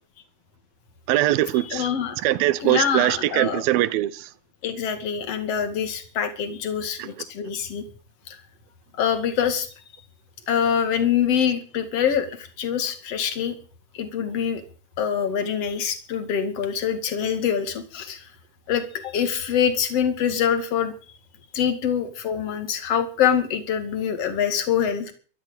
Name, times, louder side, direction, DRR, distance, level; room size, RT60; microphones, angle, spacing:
voice 1, 1.1-1.9 2.2-4.3 7.0-7.1, right 15 dB, 75° right, 2.6 m, -22 dB
voice 2, 1.6-2.2 2.6-3.6 4.6-7.8 8.3-8.4 9.0-9.7 10.5-13.6 13.9-14.6 15.0-18.3 18.7-20.9 21.5-25.1, left 8 dB, 45° left, 2.8 m, -25 dB
13.5 x 10.5 x 8.8 m
omnidirectional pair, 4.5 m